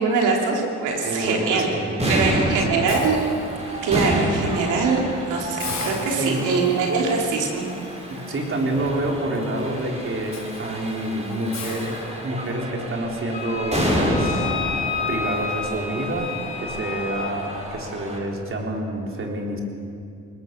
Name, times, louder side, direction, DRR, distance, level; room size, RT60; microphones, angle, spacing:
voice 1, 0.0-1.7 2.1-3.3 3.8-5.0 5.3-7.7, right 4 dB, 90° right, 0 dB, 3.6 m, -22 dB
sound 1, 0.9-18.2, equal, 20° right, 6.0 m, -29 dB
voice 2, 1.0-2.8 6.1-6.5 8.1-14.6 15.1-19.6, right 1 dB, 45° right, 1 dB, 4.0 m, -28 dB
Hiss, 2.9-4.0 4.5-4.7 5.0-5.1 5.6-12.7, left 4 dB, 60° left, 4.3 m, -39 dB
Wind instrument woodwind instrument, 13.3-17.4, left 6 dB, 30° left, 3.9 m, -30 dB
20.5 x 20.0 x 6.9 m, 2.6 s
cardioid pair, 90°, 30 cm